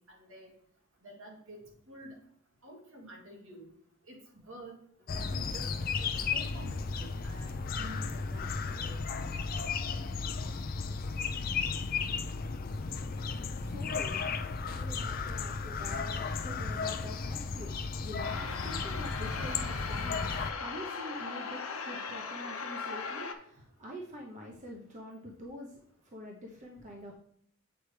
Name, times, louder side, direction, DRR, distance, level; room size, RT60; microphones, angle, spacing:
voice 1, 1.0-1.6 1.9-2.2 2.6-3.7 4.1-4.2 4.5-4.8 5.1-5.7 6.0-9.0, right 1 dB, 75° right, -2 dB, 2.1 m, -49 dB
sound 1, 5.1-20.5, left 4 dB, 45° left, 0.4 m, -34 dB
voice 2, 13.5-14.3 14.7-25.8 26.0-27.1, equal, 35° right, -1 dB, 0.8 m, -46 dB
sound 2, 18.2-23.3, left 5 dB, 90° left, 0.8 m, -38 dB
8.0 x 4.7 x 3.2 m, 0.65 s
head